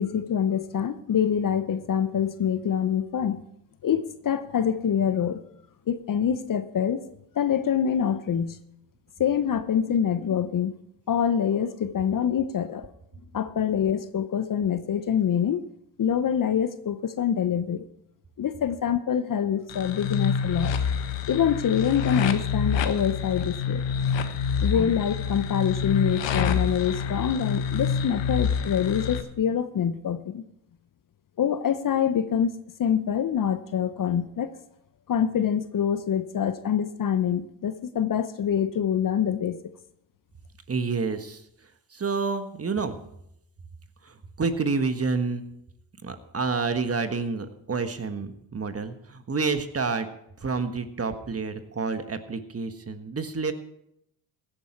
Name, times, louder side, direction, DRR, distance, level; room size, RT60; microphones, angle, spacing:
voice 1, 0.0-3.4 3.8-5.4 5.9-7.0 7.3-8.6 9.2-10.8 11.1-12.9 13.3-15.6 16.0-17.8 18.4-20.8 21.3-23.8 24.6-30.4 31.4-34.5 35.1-39.6, left 8 dB, 40° left, 12 dB, 0.9 m, -25 dB
sound 1, 19.7-29.2, left 6 dB, 60° left, 1.4 m, -27 dB
voice 2, 40.7-41.4 41.9-43.0 44.0-45.4 46.0-50.1 50.4-53.5, right 4 dB, 30° right, 9 dB, 1.5 m, -29 dB
16.5 x 9.9 x 4.6 m, 0.77 s
supercardioid pair, 65°, 50 cm